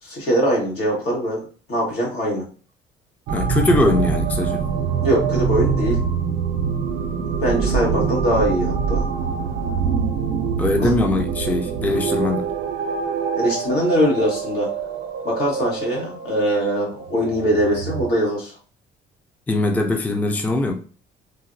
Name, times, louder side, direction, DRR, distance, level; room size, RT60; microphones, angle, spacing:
voice 1, 0.0-1.4 1.7-2.4 5.0-6.0 7.2-9.0 10.8-10.9 13.3-14.7 15.2-18.6, equal, 80° left, 1.5 m, -22 dB
voice 2, 3.3-4.6 10.6-12.5 19.5-20.7, left 2 dB, 10° left, 0.4 m, -21 dB
sound 1, 3.3-18.1, right 6 dB, 90° right, 0.5 m, -24 dB
3.9 x 2.1 x 2.5 m
cardioid pair, 110°, 17 cm